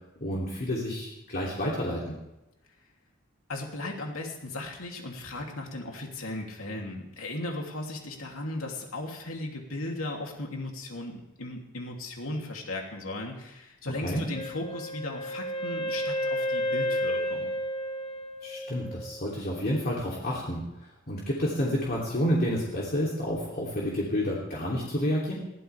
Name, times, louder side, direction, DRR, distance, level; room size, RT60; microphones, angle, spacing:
voice 1, 0.2-2.2 14.0-14.2 18.4-25.3, equal, 45° left, -4 dB, 3.2 m, -29 dB
voice 2, 3.5-17.5, left 2 dB, 75° left, 0 dB, 3.0 m, -36 dB
Wind instrument woodwind instrument, 14.3-19.2, equal, 30° left, 1.5 m, -31 dB
22.0 x 16.0 x 3.5 m, 0.93 s
head